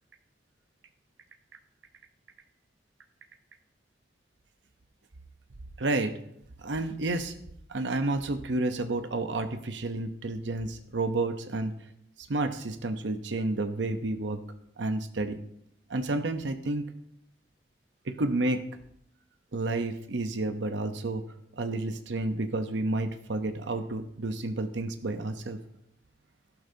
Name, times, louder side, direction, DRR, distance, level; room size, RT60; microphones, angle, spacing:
voice 1, 5.8-6.1 6.6-7.3 7.7-11.7 12.2-14.4 14.8-15.4 15.9-16.8 18.1-18.6 19.5-21.2 21.6-25.6, right 2 dB, 80° right, 8 dB, 0.8 m, -30 dB
13.0 x 12.0 x 2.8 m, 0.73 s
head